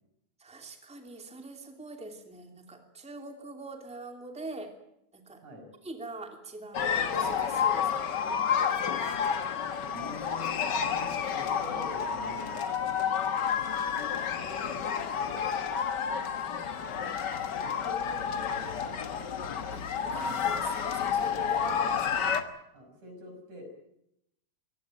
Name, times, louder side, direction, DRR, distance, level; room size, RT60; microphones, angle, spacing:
voice 1, 0.4-4.7 5.1-5.4 5.8-8.2 19.7-22.4, right 2 dB, ahead, 4 dB, 2.5 m, -43 dB
sound 1, 6.7-22.4, left 7 dB, 45° left, 1.5 m, -30 dB
voice 2, 9.9-11.1 11.3-12.6 13.9-14.1 14.4-15.7 16.8-17.1 17.5-19.3 22.7-23.6, left 1 dB, 85° right, 4 dB, 7.5 m, -45 dB
23.5 x 17.5 x 9.1 m, 0.81 s
omnidirectional pair, 3.3 m